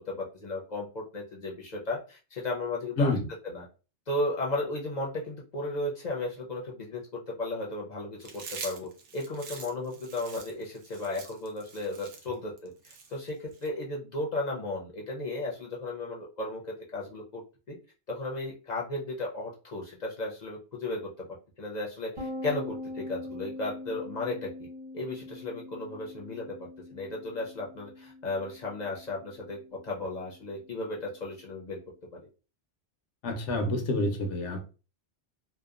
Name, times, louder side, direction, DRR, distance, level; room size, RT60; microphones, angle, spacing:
voice 1, 0.1-3.1 3.4-3.7 4.1-17.4 17.7-17.8 18.1-21.3 21.6-24.7 24.9-31.8 32.1-32.2, left 2 dB, 50° left, -2 dB, 0.6 m, -35 dB
Chewing mastication, 8.2-13.7, right 5 dB, 85° right, 0.9 m, -44 dB
sound 1, 22.2-31.6, left 2 dB, 30° right, 1.1 m, -43 dB
voice 2, 33.2-34.7, left 1 dB, 85° left, 4 dB, 1.0 m, -28 dB
2.7 x 2.1 x 2.4 m, 0.33 s
omnidirectional pair, 1.2 m